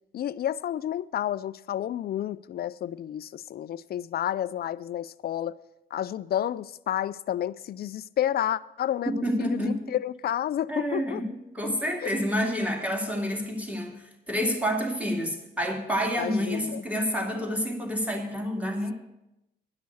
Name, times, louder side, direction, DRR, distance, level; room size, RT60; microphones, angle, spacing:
voice 1, 0.1-5.6 5.9-11.2 12.0-12.1 16.2-16.8, left 11 dB, 50° left, 0.4 m, -30 dB
voice 2, 9.2-10.0 10.7-18.9, equal, 5° right, 2.4 m, -29 dB
10.5 x 6.3 x 8.4 m
cardioid pair, 90°, 20 cm